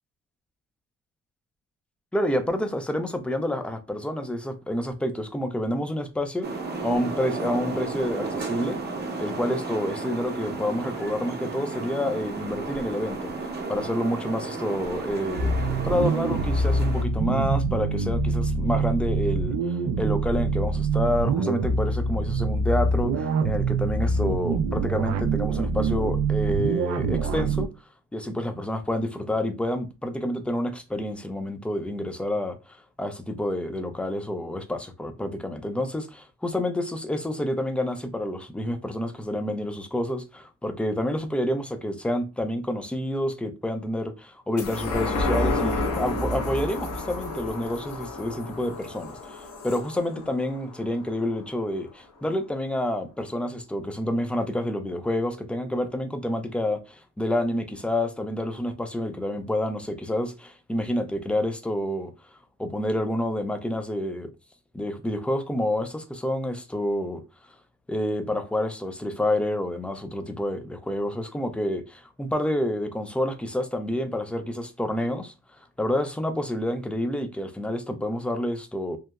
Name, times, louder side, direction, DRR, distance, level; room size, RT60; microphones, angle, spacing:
voice 1, 2.1-6.5 6.8-8.8 9.2-13.3 13.7-27.7 28.1-62.1 62.6-64.3 64.7-67.2 67.9-75.3 75.8-79.0, left 1 dB, 5° left, 0.3 m, -28 dB
sound 1, 6.4-17.0, right 3 dB, 35° right, 0.7 m, -33 dB
sound 2, 15.4-27.7, right 3 dB, 65° right, 0.4 m, -25 dB
sound 3, 44.6-51.4 51.8-51.9, left 2 dB, 80° left, 0.7 m, -30 dB
2.8 x 2.1 x 2.3 m
cardioid pair, 90°, 30 cm